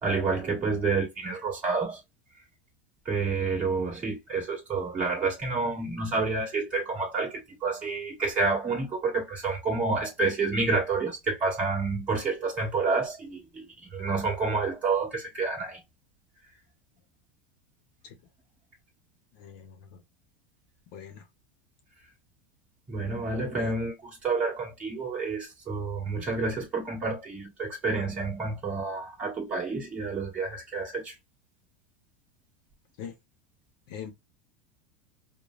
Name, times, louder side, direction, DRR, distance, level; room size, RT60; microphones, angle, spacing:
voice 1, 0.0-2.0 3.0-15.8 22.9-31.1, right 4 dB, 20° right, 1.8 m, -29 dB
voice 2, 19.3-20.0 20.9-21.2 23.6-23.7 33.0-33.1 33.9-34.1, left 8 dB, 45° left, 0.8 m, -42 dB
5.1 x 2.2 x 2.4 m
supercardioid pair, 180°, 6 cm